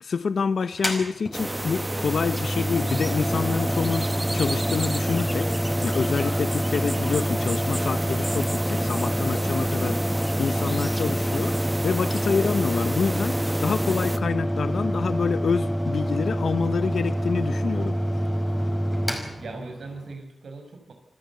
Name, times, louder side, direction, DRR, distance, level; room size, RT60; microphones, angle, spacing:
voice 1, 0.0-5.5 5.8-10.0 10.4-18.0, left 5 dB, 75° left, 13 dB, 0.8 m, -27 dB
Mechanical fan, 0.7-20.1, equal, 5° left, 5.3 m, -27 dB
sound 1, 1.3-14.2, right 1 dB, 15° right, 1.3 m, -31 dB
voice 2, 9.1-10.0 19.4-20.9, right 3 dB, 85° right, 5 dB, 5.5 m, -41 dB
27.5 x 13.0 x 8.2 m, 0.84 s
wide cardioid pair, 105°, 0 cm